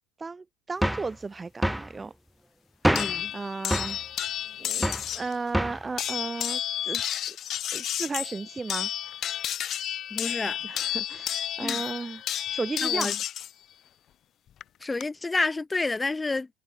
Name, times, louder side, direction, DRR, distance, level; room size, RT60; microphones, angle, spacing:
voice 1, 0.2-2.1 3.3-4.0 4.6-7.0 7.3-7.4 7.7-8.9 10.6-12.2 12.5-13.2, right 4 dB, 20° right, 1.9 m, -34 dB
sound 1, 0.8-1.1 1.6-1.9 2.8-3.2 3.7-4.0 4.8-5.1 5.5-5.9, equal, ahead, 4.0 m, -26 dB
voice 2, 2.9-3.3 10.1-10.6 11.6-11.8 12.8-13.2 14.8-16.5, left 3 dB, 15° left, 3.8 m, -29 dB
sound 2, 3.0-5.3 6.0-13.5 14.6-15.0, left 11 dB, 45° left, 1.8 m, -31 dB
hypercardioid pair, 75°, 0 cm